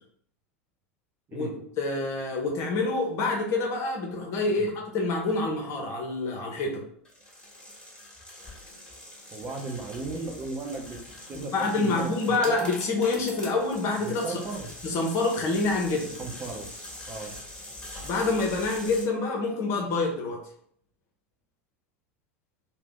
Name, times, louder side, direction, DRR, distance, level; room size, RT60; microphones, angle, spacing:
voice 1, 1.8-6.8 11.3-14.4 14.8-16.1 18.0-20.4, left 3 dB, 45° left, 1 dB, 0.7 m, -27 dB
sound 1, 7.1-19.1, left 1 dB, 10° left, 1.3 m, -43 dB
voice 2, 9.3-11.0 11.3-12.5 14.1-14.7 16.2-16.7 17.1-17.3, right 3 dB, 30° right, 2 dB, 0.7 m, -36 dB
2.8 x 2.1 x 3.7 m, 0.63 s
figure-of-eight pair, 85°, 7 cm